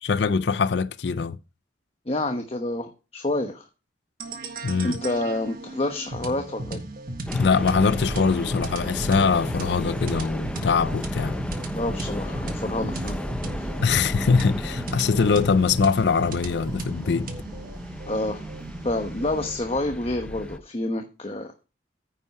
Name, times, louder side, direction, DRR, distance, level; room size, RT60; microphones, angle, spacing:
voice 1, 0.0-1.4 4.6-5.0 7.3-11.4 13.8-17.3, left 5 dB, 70° left, 0.5 m, -22 dB
voice 2, 2.1-3.7 4.8-6.8 11.7-13.2 13.6-13.7 18.1-18.4 18.8-21.5, left 2 dB, 35° left, 1.0 m, -28 dB
sound 1, 4.2-19.6, right 2 dB, 55° right, 1.5 m, -36 dB
sound 2, 7.3-20.6, equal, 5° left, 0.7 m, -33 dB
9.6 x 5.4 x 5.9 m
head